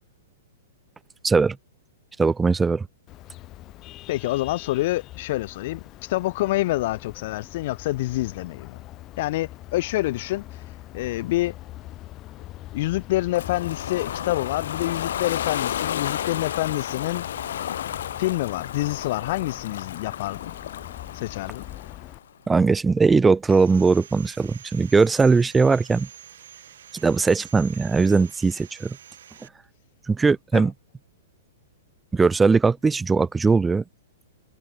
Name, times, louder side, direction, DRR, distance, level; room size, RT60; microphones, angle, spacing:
voice 1, 1.2-1.6 2.2-2.9 22.5-26.1 26.9-29.0 30.1-30.7 32.1-33.8, right 4 dB, 10° right, 0.9 m, -20 dB
Vehicle horn car horn honking, 3.1-22.2, left 16 dB, 35° left, 1.9 m, -42 dB
voice 2, 4.1-8.8 9.2-11.5 12.7-17.6 18.2-20.5 21.1-21.6 30.5-30.6, left 17 dB, 55° left, 1.1 m, -27 dB
Ocean, 13.3-22.2, left 10 dB, 70° left, 0.6 m, -32 dB
Sawing, 23.5-29.5, right 9 dB, 70° right, 4.8 m, -46 dB
hypercardioid pair, 120°, 0 cm